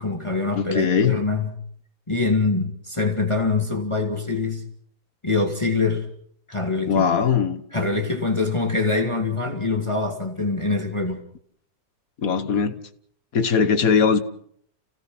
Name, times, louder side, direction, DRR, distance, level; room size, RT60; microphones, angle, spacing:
voice 1, 0.0-1.5 2.1-4.6 5.2-6.1 6.5-7.0 7.7-11.2, left 3 dB, 20° left, 2.3 m, -24 dB
voice 2, 0.5-1.2 6.9-7.6 12.2-12.8 13.3-14.2, left 6 dB, 60° left, 1.8 m, -20 dB
29.5 x 17.5 x 6.1 m
omnidirectional pair, 1.7 m